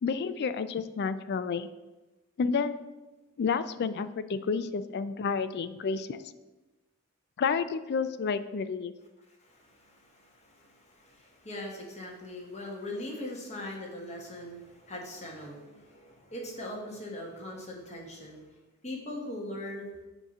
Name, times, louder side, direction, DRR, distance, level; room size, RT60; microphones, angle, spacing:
voice 1, 0.0-1.7 2.4-2.8 3.4-6.2 7.4-8.9, left 5 dB, 50° left, 13 dB, 0.3 m, -30 dB
voice 2, 9.2-18.6 18.8-19.9, left 1 dB, 30° left, -1 dB, 1.4 m, -41 dB
8.0 x 2.9 x 5.9 m, 1.1 s
head